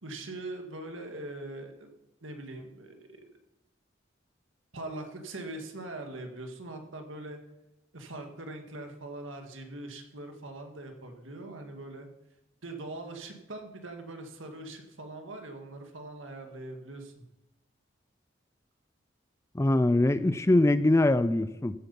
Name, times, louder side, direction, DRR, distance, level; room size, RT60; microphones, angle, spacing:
voice 1, 0.0-1.9 2.2-3.2 4.7-7.4 7.9-12.1 12.6-17.2, right 2 dB, 90° right, 5 dB, 1.8 m, -42 dB
voice 2, 19.5-21.7, left 1 dB, 15° left, 14 dB, 0.4 m, -23 dB
14.5 x 8.1 x 5.3 m, 0.92 s
head